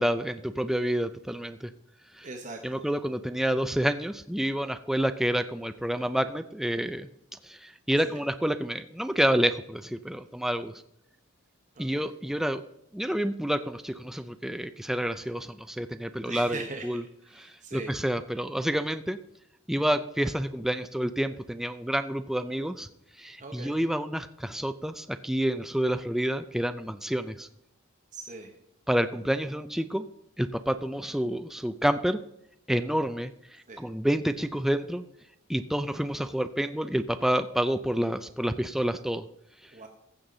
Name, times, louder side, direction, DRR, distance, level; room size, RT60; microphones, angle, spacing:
voice 1, 0.0-1.7 2.2-2.3 2.6-7.1 7.4-10.8 11.8-12.6 12.9-17.0 17.4-19.2 19.7-22.9 23.2-27.5 28.9-30.0 30.4-32.2 32.7-33.3 33.8-35.0 35.5-39.2, equal, ahead, 10 dB, 0.4 m, -28 dB
voice 2, 2.2-2.8 8.0-8.2 11.7-12.1 16.2-18.0 23.4-23.7 28.1-28.5 33.7-33.8 39.7-39.9, right 3 dB, 40° right, 3 dB, 1.1 m, -41 dB
15.0 x 7.1 x 3.8 m, 0.79 s
head